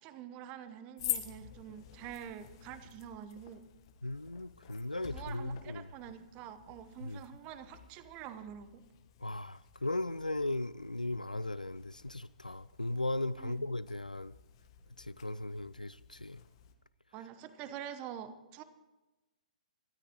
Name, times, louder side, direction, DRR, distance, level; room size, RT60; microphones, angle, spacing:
voice 1, 0.0-3.6 5.1-8.8 13.4-13.6 17.1-18.6, right 9 dB, 25° right, 12 dB, 1.0 m, -46 dB
sound 1, 1.0-16.7, left 12 dB, 40° left, 1.2 m, -48 dB
voice 2, 4.0-5.9 7.0-7.2 9.2-14.3 15.0-16.4, left 2 dB, 85° left, 17 dB, 0.4 m, -37 dB
26.0 x 13.5 x 3.0 m, 1.1 s
figure-of-eight pair, 120°, 4 cm